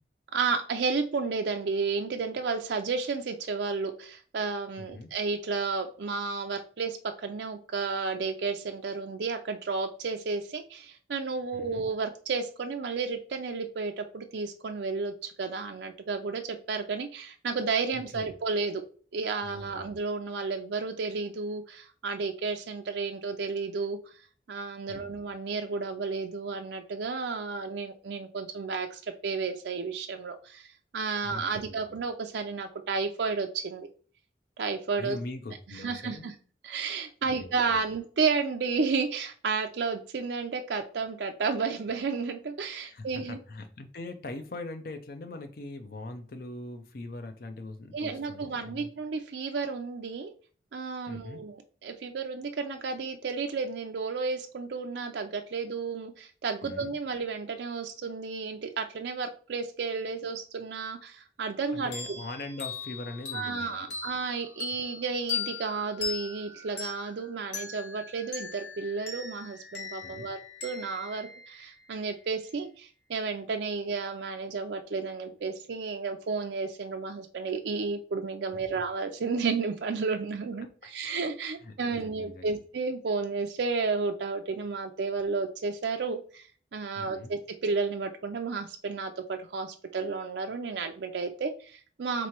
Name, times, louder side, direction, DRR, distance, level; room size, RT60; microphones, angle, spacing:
voice 1, 0.3-18.8 19.1-24.0 24.5-30.7 30.9-33.9 34.6-35.2 35.7-36.3 36.6-43.4 47.9-50.3 50.7-61.9 63.3-86.5 86.7-92.3, right 4 dB, 70° right, 0.4 m, -32 dB
voice 2, 4.8-5.1 11.5-11.8 17.9-18.3 19.4-19.9 24.9-25.1 31.2-31.8 35.0-36.3 37.2-37.8 42.8-48.9 51.1-51.4 56.6-56.9 61.7-64.0 70.0-70.3 78.5-78.8 81.6-82.5 87.0-87.3, left 2 dB, 55° left, 0.5 m, -42 dB
sound 1, 61.9-72.2, left 5 dB, 85° left, 1.4 m, -39 dB
3.7 x 3.0 x 4.4 m
head